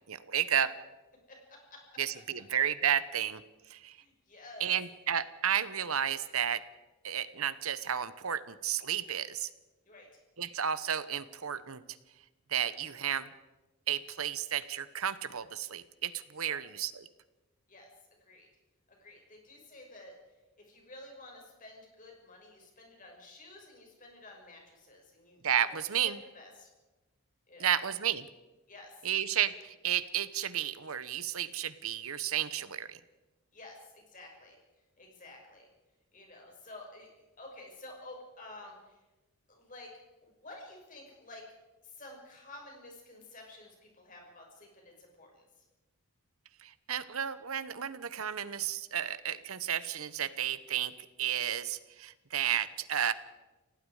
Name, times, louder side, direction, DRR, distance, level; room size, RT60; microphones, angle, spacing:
voice 1, 0.1-0.7 2.0-3.4 3.7-4.0 4.6-6.6 7.0-9.5 10.4-11.8 12.5-13.3 13.9-17.1 25.4-26.2 27.6-28.3 29.0-33.0 46.6-53.1, right 9 dB, 70° right, 14 dB, 1.0 m, -32 dB
voice 2, 1.3-2.0 3.9-4.7 9.8-10.1 16.4-16.6 17.7-17.9 18.2-18.5 18.9-20.1 20.6-26.7 27.5-27.8 28.7-29.0 33.5-34.6 35.0-35.7 36.1-37.1 37.4-39.0 39.5-39.9 40.2-41.5 41.8-45.6, left 2 dB, 35° left, 0 dB, 6.0 m, -51 dB
29.5 x 18.0 x 5.0 m, 1.1 s
head